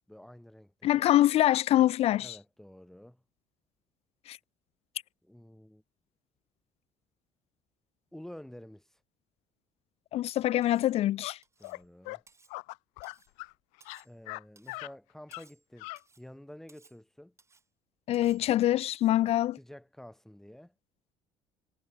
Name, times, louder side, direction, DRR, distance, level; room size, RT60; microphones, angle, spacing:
voice 1, 0.1-1.1 2.2-3.2 5.2-5.8 8.1-9.0 11.6-12.2 14.0-15.9 16.2-17.4 19.6-20.8, left 1 dB, 5° left, 1.8 m, -50 dB
voice 2, 0.8-2.4 4.3-4.4 10.1-11.4 18.1-19.6, left 13 dB, 60° left, 0.4 m, -25 dB
Cutlery silverware, 10.6-11.0 11.4-11.8 12.3-12.6 13.0-13.3 13.8-14.2 14.6-14.8 15.3-15.7 16.0-16.3 16.7-17.0 17.4-17.7 18.1-18.5 18.9-19.2, right 4 dB, 25° right, 7.2 m, -62 dB
sound 1, 11.2-11.3 11.6-11.8 12.0-12.2 12.5-13.5 13.8-14.4 14.7-14.9 15.3-15.4 15.8-16.0, left 30 dB, 90° left, 0.7 m, -40 dB
supercardioid pair, 90°, 12 cm